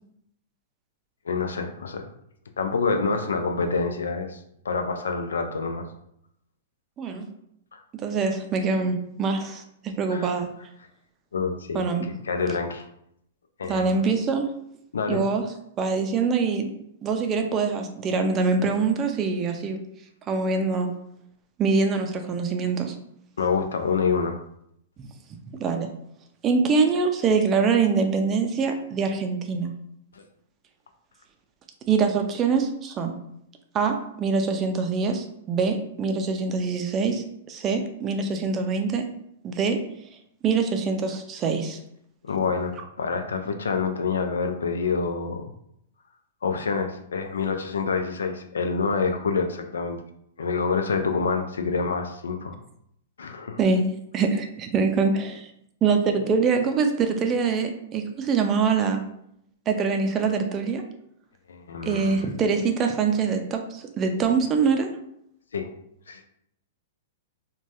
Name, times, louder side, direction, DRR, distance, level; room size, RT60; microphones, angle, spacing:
voice 1, 1.3-2.0 2.6-5.9 7.7-7.8 10.1-10.3 11.3-11.9 12.2-12.9 13.6-14.0 14.9-15.2 23.4-24.4 30.1-30.2 42.2-45.5 46.4-50.0 50.4-52.6 53.2-53.6 61.5-62.3 65.5-65.7 66.1-66.2, left 5 dB, 80° left, 6 dB, 0.4 m, -27 dB
voice 2, 7.9-10.5 11.7-12.1 13.6-14.5 15.1-15.4 15.8-16.7 17.0-19.8 20.3-20.9 21.6-23.0 25.5-25.9 26.4-29.7 31.9-33.2 33.7-39.0 39.4-39.8 40.4-41.8 53.6-53.8 54.1-55.5 55.8-59.0 59.7-60.8 61.8-64.9, right 5 dB, 25° right, 5 dB, 0.4 m, -24 dB
3.2 x 2.2 x 2.6 m, 0.74 s
hypercardioid pair, 120°, 0 cm